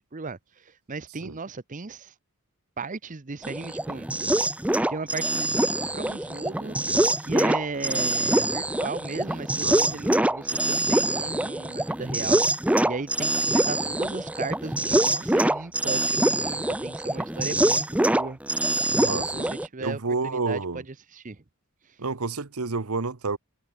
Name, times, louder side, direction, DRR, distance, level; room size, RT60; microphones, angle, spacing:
voice 1, 0.0-2.1 2.8-4.1 4.9-12.5 12.8-18.4 18.9-20.6 21.1-21.4, right 3 dB, 35° right, 0.8 m, -36 dB
sound 1, 3.4-19.7, right 1 dB, 5° right, 0.5 m, -24 dB
voice 2, 9.6-10.0 19.0-19.5 19.8-20.8 22.0-23.4, right 3 dB, 80° right, 1.2 m, -30 dB
head